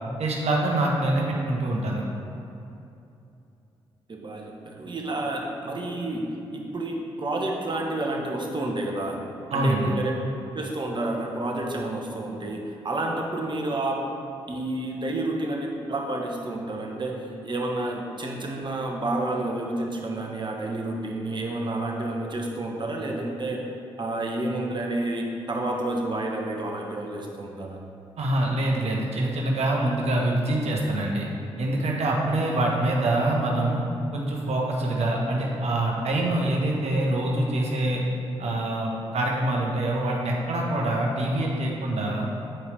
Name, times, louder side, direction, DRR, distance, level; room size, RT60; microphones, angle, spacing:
voice 1, 0.2-2.0 9.5-9.9 28.2-31.3 31.6-33.8 34.1-38.0 38.4-42.3, right 1 dB, 60° right, -1 dB, 1.2 m, -25 dB
voice 2, 4.1-6.3 6.5-9.2 9.5-10.1 10.5-14.0 14.5-17.1 17.4-23.6 24.0-27.8, right 2 dB, 40° right, 0 dB, 1.3 m, -30 dB
8.9 x 4.7 x 3.4 m, 2.7 s
hypercardioid pair, 40°, 12 cm